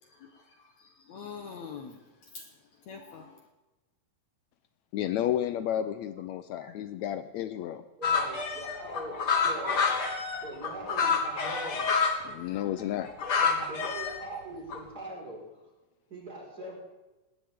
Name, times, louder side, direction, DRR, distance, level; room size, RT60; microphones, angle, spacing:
voice 1, 0.0-3.5, left 5 dB, 65° left, 4 dB, 2.2 m, -46 dB
voice 2, 4.9-7.8 12.2-13.1, left 11 dB, 90° left, 10 dB, 1.6 m, -32 dB
sound 1, 8.0-12.2 12.8-14.4 14.7-14.8, left 5 dB, 45° left, 1.5 m, -28 dB
voice 3, 8.0-10.1 10.4-11.9 13.2-15.7 16.1-16.8, right 1 dB, 25° right, -2 dB, 5.3 m, -42 dB
20.0 x 18.0 x 3.7 m, 1.1 s
omnidirectional pair, 4.0 m